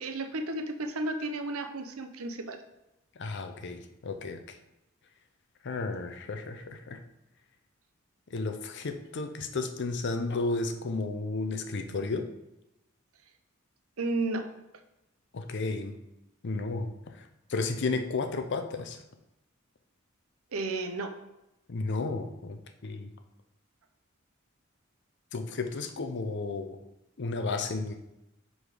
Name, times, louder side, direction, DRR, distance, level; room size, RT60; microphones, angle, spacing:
voice 1, 0.0-2.6 14.0-14.5 20.5-21.1, right 2 dB, 90° right, 8 dB, 0.7 m, -33 dB
voice 2, 3.2-4.6 5.6-7.0 8.3-12.3 15.3-16.0 16.4-17.2 17.5-19.0 21.7-23.1 25.3-26.8 27.2-27.9, left 3 dB, 55° left, 7 dB, 0.6 m, -33 dB
5.0 x 3.9 x 4.9 m, 0.89 s
head